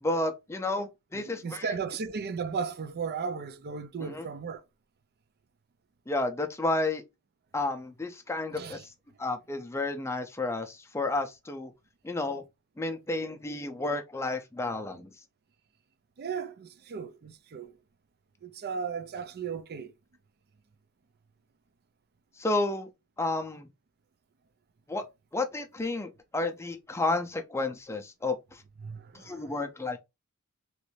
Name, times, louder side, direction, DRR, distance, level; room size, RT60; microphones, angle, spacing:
voice 1, 0.0-1.7 4.0-4.3 6.1-7.0 7.5-8.8 9.2-11.7 12.0-12.4 12.8-15.1 22.4-22.9 23.2-23.7 24.9-25.0 25.3-28.6 29.1-30.0, left 2 dB, 10° left, 0.5 m, -31 dB
voice 2, 1.1-4.6 8.5-8.8 16.2-17.8 18.4-19.9 28.8-29.5, right 5 dB, 45° right, 0.4 m, -36 dB
3.1 x 2.5 x 3.1 m
head